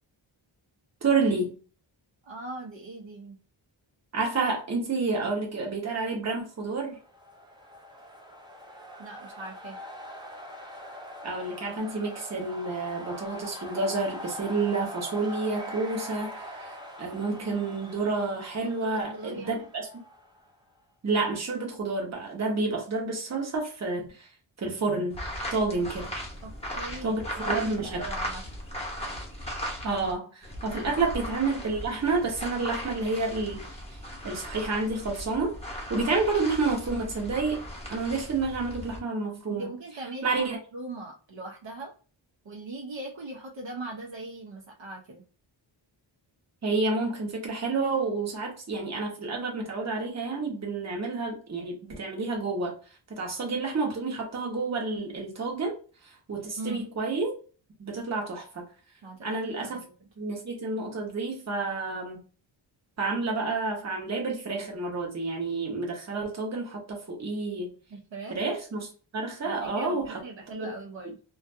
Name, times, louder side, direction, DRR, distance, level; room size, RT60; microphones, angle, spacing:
voice 1, 1.0-1.5 4.1-7.0 11.2-19.9 21.0-24.3 24.6-25.2 25.5-26.1 27.0-28.0 29.8-33.6 33.9-34.0 34.2-35.5 35.9-37.6 37.9-39.7 40.2-40.6 46.6-52.8 53.1-55.8 56.3-57.3 57.8-58.7 59.2-59.8 60.2-62.2 63.0-67.7 68.3-70.2 70.5-70.7, right 3 dB, 35° right, 0.9 m, -29 dB
voice 2, 2.2-3.4 9.0-9.8 18.8-19.6 26.4-28.4 30.7-31.1 39.5-41.9 42.4-45.2 56.6-56.9 59.0-59.9 67.9-68.3 69.4-71.2, right 2 dB, 65° right, 0.8 m, -40 dB
sound 1, 6.8-20.5, equal, 10° right, 0.4 m, -43 dB
sound 2, 25.1-30.1 30.4-39.0, equal, 15° left, 0.8 m, -37 dB
2.5 x 2.3 x 2.5 m
wide cardioid pair, 145°, 48 cm